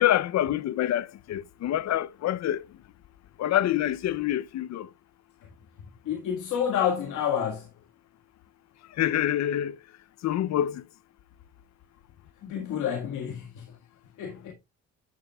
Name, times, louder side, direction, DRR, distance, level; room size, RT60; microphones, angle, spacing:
voice 1, 0.0-2.6 3.4-4.9 9.0-9.8 10.2-10.8, left 12 dB, 60° left, 0.6 m, -26 dB
voice 2, 6.0-7.7 12.4-13.7 14.2-14.5, left 8 dB, 85° left, 1.7 m, -29 dB
12.0 x 7.1 x 2.3 m
cardioid pair, 90°, 30 cm